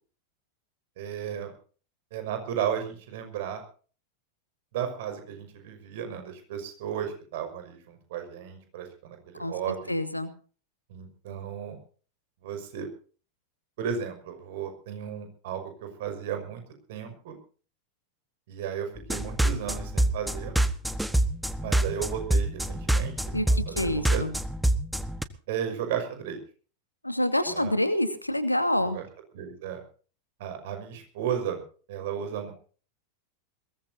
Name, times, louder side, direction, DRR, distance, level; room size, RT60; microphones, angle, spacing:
voice 1, 1.0-1.5 2.1-3.6 4.7-9.9 10.9-11.8 12.4-12.9 13.8-16.6 16.9-17.4 18.5-20.5 21.6-23.2 23.7-23.8 24.1-24.2 25.5-26.4 27.5-27.7 28.8-29.0 29.3-29.8 30.4-31.6 31.9-32.5, right 8 dB, 55° right, 6 dB, 5.7 m, -34 dB
voice 2, 9.9-10.3 23.3-24.3 27.0-29.0, left 1 dB, 85° left, 9 dB, 2.5 m, -27 dB
sound 1, 19.0-25.2, right 1 dB, 5° right, 1.3 m, -26 dB
22.0 x 18.5 x 2.8 m, 0.40 s
figure-of-eight pair, 90°, 0 cm